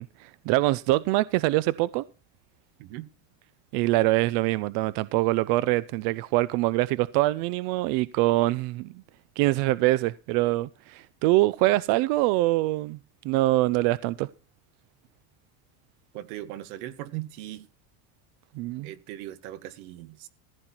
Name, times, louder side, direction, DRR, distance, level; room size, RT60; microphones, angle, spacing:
voice 1, 0.0-2.0 3.7-8.9 9.4-13.0 13.2-14.3 18.6-18.9, right 18 dB, 55° right, 0.5 m, -24 dB
voice 2, 16.1-17.7 18.8-20.3, right 14 dB, 80° right, 1.8 m, -39 dB
15.0 x 9.6 x 4.4 m
cardioid pair, 160°, 43 cm